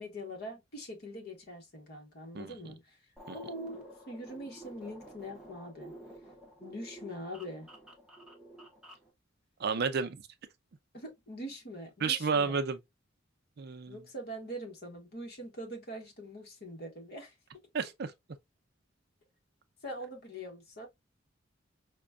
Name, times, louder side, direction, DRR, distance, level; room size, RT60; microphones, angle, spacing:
voice 1, 0.0-3.0 3.3-5.9 6.6-7.7 10.9-12.6 13.9-17.3 19.8-20.9, equal, 55° left, 1.2 m, -43 dB
sound 1, 3.2-9.1, right 1 dB, 5° right, 0.7 m, -50 dB
voice 2, 9.6-10.2 12.0-12.8 13.6-14.0 17.7-18.1, right 5 dB, 55° right, 0.5 m, -31 dB
5.0 x 2.2 x 2.2 m
head